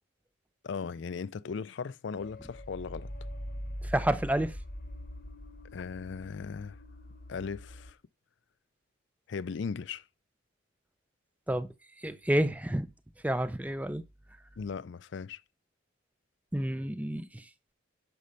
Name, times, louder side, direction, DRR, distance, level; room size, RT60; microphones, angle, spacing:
voice 1, 0.6-3.1 5.7-6.8 7.3-8.0 9.3-10.1 14.6-15.4, left 5 dB, 65° left, 0.4 m, -37 dB
sound 1, 2.2-7.9, equal, 45° left, 1.0 m, -42 dB
voice 2, 3.8-4.6 11.5-11.7 12.0-12.9 13.2-14.0 16.5-17.5, right 1 dB, 5° right, 0.5 m, -29 dB
11.5 x 5.5 x 5.4 m
head